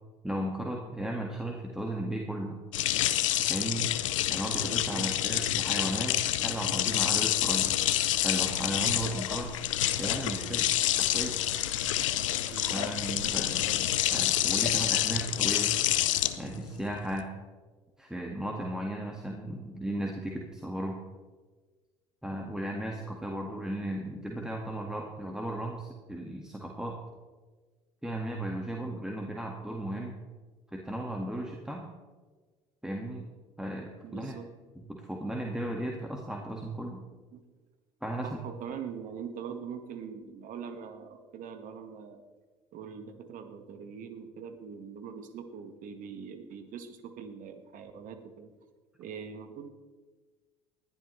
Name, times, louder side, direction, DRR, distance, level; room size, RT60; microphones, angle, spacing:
voice 1, 0.2-2.6 3.4-3.9 4.3-7.7 8.2-9.5 10.0-10.7 11.0-11.4 12.7-15.8 16.4-17.3 18.0-21.0 22.2-27.0 28.0-30.2 30.7-31.9 32.8-33.3 33.6-34.3 34.9-37.0 38.0-38.4, right 1 dB, 5° right, 0 dB, 1.8 m, -35 dB
sound 1, 2.7-17.2, left 13 dB, 80° left, 0.6 m, -28 dB
voice 2, 4.7-5.1 12.5-12.9 13.2-13.4 34.0-34.5 37.3-37.4 38.2-42.3 42.7-48.5 49.0-49.7, right 7 dB, 55° right, 8 dB, 1.6 m, -42 dB
sound 2, 6.1-15.5, right 3 dB, 70° right, 1.5 m, -49 dB
19.5 x 11.5 x 3.2 m, 1.3 s
hypercardioid pair, 65°, 16 cm